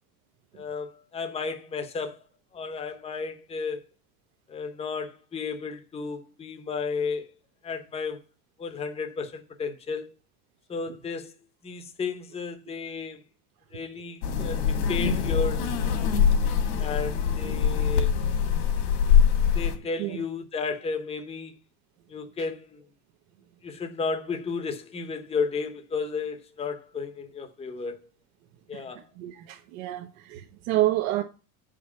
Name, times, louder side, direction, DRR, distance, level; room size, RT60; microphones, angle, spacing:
voice 1, 0.5-2.2 2.5-3.8 4.5-7.3 7.6-8.2 8.6-10.1 10.7-11.3 11.6-13.2 13.7-16.2 16.8-18.1 19.5-21.6 22.1-22.8 23.6-28.0 28.7-29.1, left 5 dB, 15° left, 0.9 m, -33 dB
sound 1, 14.2-19.8, left 7 dB, 70° left, 2.2 m, -23 dB
voice 2, 29.2-31.2, right 16 dB, 70° right, 1.0 m, -28 dB
7.8 x 5.1 x 7.0 m
supercardioid pair, 145°, 41 cm